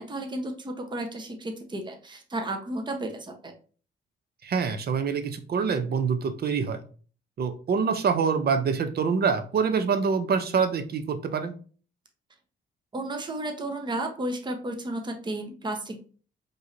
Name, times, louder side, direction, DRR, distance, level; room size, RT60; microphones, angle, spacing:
voice 1, 0.0-3.5 12.9-16.0, right 1 dB, 25° right, 4 dB, 0.9 m, -33 dB
voice 2, 4.4-6.8 7.4-11.5, right 6 dB, 50° right, 9 dB, 0.7 m, -25 dB
4.6 x 3.2 x 2.6 m, 0.39 s
cardioid pair, 90°, 20 cm